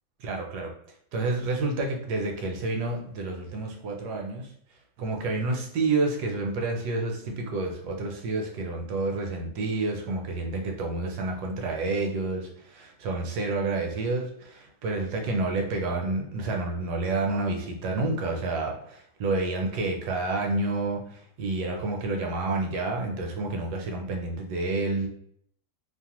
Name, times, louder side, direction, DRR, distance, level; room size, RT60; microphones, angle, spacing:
voice 1, 0.2-0.7 1.1-4.5 5.0-25.1, right 3 dB, 75° right, 2 dB, 1.1 m, -29 dB
2.8 x 2.0 x 2.8 m, 0.67 s
omnidirectional pair, 1.9 m